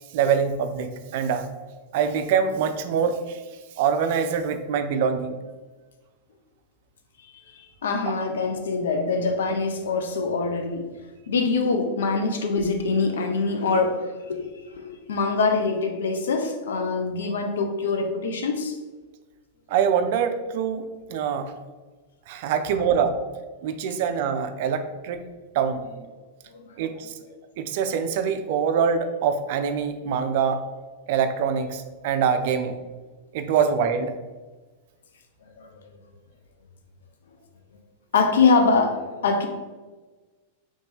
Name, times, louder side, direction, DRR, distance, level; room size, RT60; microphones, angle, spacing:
voice 1, 0.1-1.5 1.9-3.4 3.8-5.4 19.7-21.5 22.3-23.2 23.6-25.2 25.5-25.8 26.8-27.1 27.6-30.6 31.1-32.8 33.3-34.1, right 7 dB, 60° right, 8 dB, 0.4 m, -24 dB
voice 2, 7.5-10.9 11.3-14.4 14.7-18.8 26.5-26.7 27.0-27.1 35.6-35.7 38.1-39.5, left 4 dB, 75° left, 5 dB, 0.5 m, -24 dB
3.1 x 2.7 x 3.5 m, 1.3 s
hypercardioid pair, 105°, 0 cm